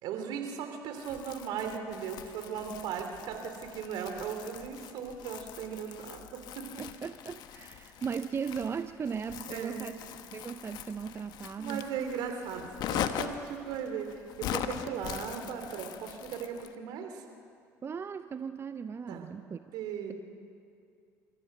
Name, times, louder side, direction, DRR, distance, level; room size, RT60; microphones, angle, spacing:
voice 1, 0.0-6.8 9.5-9.9 11.6-17.2 19.1-19.3 19.7-20.1, right 7 dB, 65° right, 5 dB, 3.0 m, -37 dB
Crumpling crinkling, 1.0-16.8, left 10 dB, 65° left, 1.1 m, -41 dB
voice 2, 6.8-10.0 10.3-11.9 17.8-19.6, right 6 dB, 30° right, 11 dB, 0.6 m, -37 dB
28.5 x 14.0 x 6.7 m, 2.4 s
hypercardioid pair, 70°, 8 cm